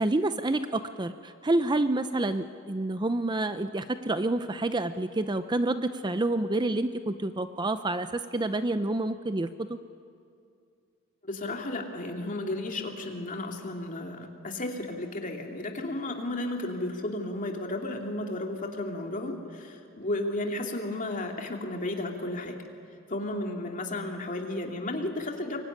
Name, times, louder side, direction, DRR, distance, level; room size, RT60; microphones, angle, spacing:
voice 1, 0.0-9.8, right 2 dB, 20° right, 10 dB, 0.6 m, -28 dB
voice 2, 11.2-22.6 23.1-25.6, left 2 dB, 40° left, 2 dB, 2.7 m, -33 dB
24.0 x 23.0 x 10.0 m, 2.4 s
head